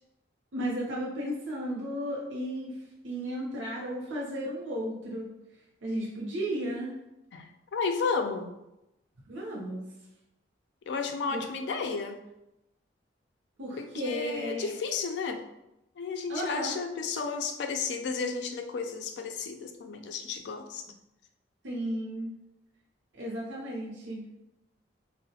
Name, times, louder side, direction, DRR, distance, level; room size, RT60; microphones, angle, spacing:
voice 1, 0.5-2.8 3.0-5.3 5.8-6.9 9.3-9.9 11.3-11.5 13.6-14.7 16.3-16.8 21.6-22.3 23.1-24.2, equal, 80° right, -3 dB, 0.6 m, -34 dB
voice 2, 7.3-8.5 10.9-12.2 13.7-15.4 16.0-20.8, left 5 dB, 65° left, 6 dB, 0.3 m, -33 dB
3.7 x 2.0 x 2.7 m, 0.90 s
head